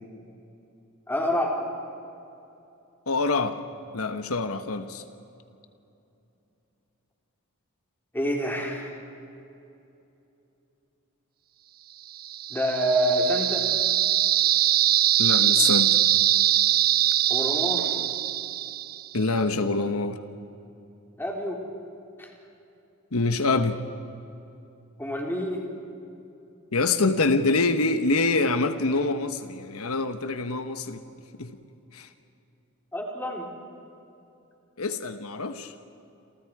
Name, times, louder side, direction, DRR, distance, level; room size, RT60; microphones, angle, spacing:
voice 1, 1.1-1.6 8.1-9.0 12.5-13.7 17.3-17.9 21.2-21.6 22.2-22.3 25.0-25.6 32.9-33.5, equal, 10° left, -1 dB, 3.8 m, -27 dB
voice 2, 3.1-3.6 3.9-5.0 15.2-16.1 19.1-20.2 23.1-23.8 26.7-31.0 31.4-31.5 31.9-32.1 34.8-35.7, left 3 dB, 85° left, 9 dB, 1.1 m, -25 dB
sound 1, 12.2-19.1, right 12 dB, 45° right, 0.6 m, -22 dB
28.5 x 28.0 x 4.8 m, 2.8 s
head